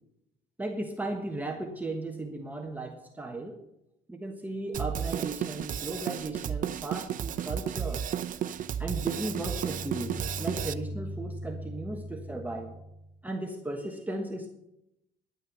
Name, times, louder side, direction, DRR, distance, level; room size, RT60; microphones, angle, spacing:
voice 1, 0.6-3.6 4.1-8.0 8.8-12.8 13.2-14.5, right 2 dB, 10° right, 3 dB, 1.3 m, -36 dB
Drum kit, 4.7-10.7, right 9 dB, 50° right, 0.7 m, -33 dB
sound 1, 8.5-13.2, equal, 10° left, 0.9 m, -40 dB
11.0 x 9.3 x 6.8 m, 0.83 s
cardioid pair, 110°, 17 cm